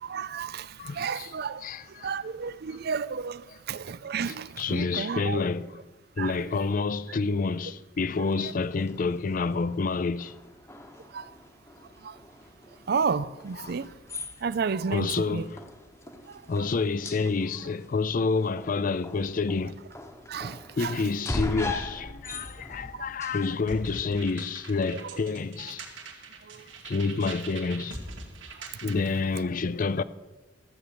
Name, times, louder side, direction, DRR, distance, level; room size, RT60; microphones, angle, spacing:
voice 1, 0.0-1.7 2.0-5.4 6.2-6.4 11.1-11.3 12.0-12.2 12.9-13.9 14.4-15.5 16.3-16.7 20.3-20.9 22.9-23.1 26.4-26.7, right 5 dB, 55° right, 0.5 m, -32 dB
voice 2, 0.8-1.3 1.6-2.1 4.6-5.8 6.2-10.3 13.6-13.7 14.9-15.6 16.5-19.8 20.8-25.9 26.9-28.0 28.8-30.0, left 4 dB, 45° left, 0.5 m, -28 dB
sound 1, 8.1-24.3, left 2 dB, 15° left, 1.0 m, -41 dB
sound 2, 23.7-29.3, right 3 dB, 90° right, 2.1 m, -43 dB
14.0 x 7.8 x 6.9 m
head